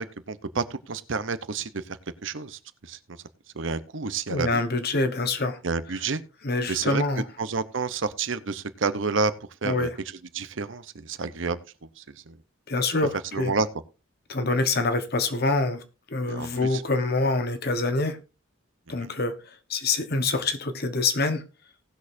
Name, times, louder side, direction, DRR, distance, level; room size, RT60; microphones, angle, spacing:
voice 1, 0.0-3.2 3.5-4.6 5.6-6.2 6.7-9.3 9.6-9.9 10.3-12.4 13.3-13.7 16.3-16.8 19.0-19.1, right 4 dB, 65° right, 0.8 m, -30 dB
voice 2, 4.3-5.6 6.4-7.2 9.6-9.9 12.7-13.5 14.3-15.8 16.1-18.2 18.9-19.3 19.7-21.4, left 3 dB, 50° left, 1.3 m, -25 dB
18.5 x 6.4 x 2.7 m
head